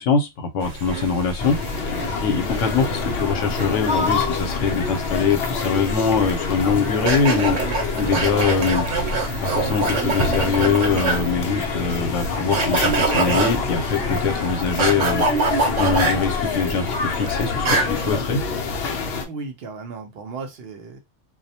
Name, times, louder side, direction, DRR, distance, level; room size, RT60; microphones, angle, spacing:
voice 1, 0.0-1.6 2.2-7.6 8.0-8.8 9.4-15.2 15.8-18.4, left 5 dB, 85° left, 1.0 m, -23 dB
sound 1, 0.6-18.2, right 3 dB, 85° right, 1.0 m, -26 dB
sound 2, 1.4-19.2, left 5 dB, 65° left, 0.7 m, -27 dB
sound 3, 9.3-11.3 11.6-11.7 11.9-12.3 12.6-13.3 13.9-14.2 14.6-15.4 15.9-16.0 16.6-16.7 17.1-17.3, right 4 dB, 15° right, 0.4 m, -41 dB
voice 2, 19.2-21.0, right 4 dB, 65° right, 0.7 m, -35 dB
2.3 x 2.0 x 2.7 m
omnidirectional pair, 1.2 m